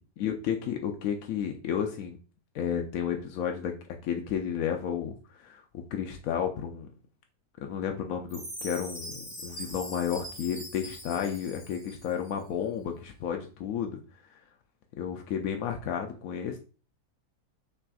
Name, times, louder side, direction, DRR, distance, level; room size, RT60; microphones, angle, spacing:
voice 1, 0.2-2.2 2.5-3.7 4.0-6.9 7.6-14.0 15.0-16.6, left 8 dB, 70° left, 3 dB, 0.9 m, -32 dB
Chime, 8.3-12.3, equal, 5° left, 2.1 m, -42 dB
5.8 x 3.4 x 2.3 m, 0.37 s
omnidirectional pair, 1.7 m